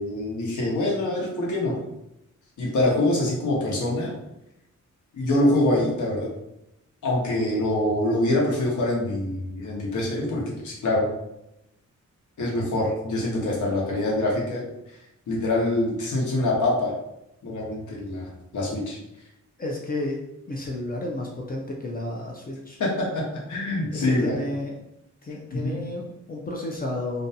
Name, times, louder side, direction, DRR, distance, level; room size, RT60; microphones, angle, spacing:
voice 1, 0.0-1.7 2.6-4.2 5.1-6.3 7.0-11.0 12.4-14.6 15.3-16.9 17.4-19.0 22.8-23.2 23.5-24.4 25.6-25.7, left 1 dB, 80° left, -3 dB, 0.8 m, -25 dB
voice 2, 19.6-20.2 20.5-22.8 23.9-24.7 25.2-27.3, left 1 dB, 30° left, -1 dB, 0.3 m, -32 dB
2.5 x 2.2 x 2.7 m, 0.86 s
wide cardioid pair, 135°, 30 cm